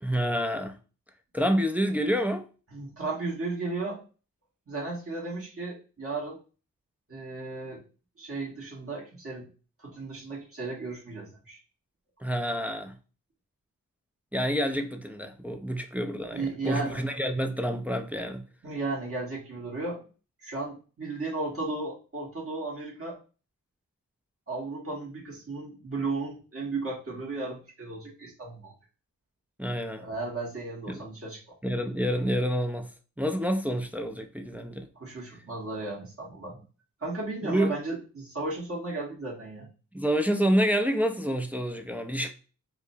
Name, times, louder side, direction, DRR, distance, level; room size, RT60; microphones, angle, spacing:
voice 1, 0.0-0.8 1.3-2.4 12.2-13.0 14.3-18.4 29.6-30.1 30.9-31.0 31.6-32.9 33.2-34.9 37.4-37.7 39.9-42.3, equal, 5° right, 0.4 m, -28 dB
voice 2, 2.7-4.0 4.7-6.4 7.1-7.8 8.2-9.5 9.8-11.6 16.3-17.0 18.6-20.0 20.4-23.2 24.5-28.7 30.0-31.4 34.9-36.6 37.0-39.7, right 3 dB, 40° right, 1.3 m, -35 dB
4.7 x 2.1 x 2.7 m
wide cardioid pair, 65°, 34 cm